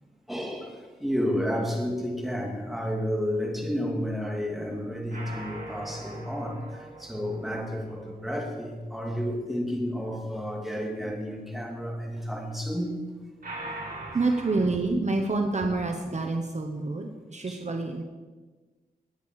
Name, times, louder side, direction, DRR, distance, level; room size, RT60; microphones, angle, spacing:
voice 1, 0.3-12.9 14.1-14.2 17.5-17.6, equal, ahead, -1 dB, 2.7 m, -31 dB
sound 1, 5.1-8.4 13.4-14.7, right 2 dB, 65° right, 4.8 m, -41 dB
voice 2, 14.1-18.0, right 3 dB, 45° right, 4 dB, 1.1 m, -27 dB
19.5 x 9.1 x 4.9 m, 1.3 s
wide cardioid pair, 115°, 16 cm